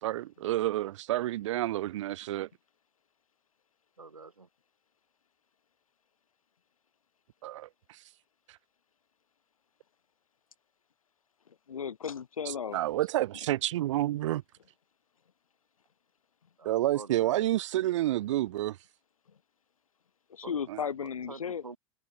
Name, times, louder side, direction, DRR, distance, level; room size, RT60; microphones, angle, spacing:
voice 1, 0.0-2.5 7.4-8.0 12.5-14.4 16.6-18.8 20.7-20.8, right 14 dB, 60° right, 0.7 m, -29 dB
voice 2, 4.0-4.5 16.6-17.4 20.4-20.5 21.3-21.8, right 4 dB, 90° right, 2.7 m, -46 dB
voice 3, 11.5-12.8 19.3-19.4 20.3-21.6, left 7 dB, 75° left, 4.9 m, -35 dB
open air
figure-of-eight pair, 95°, 18 cm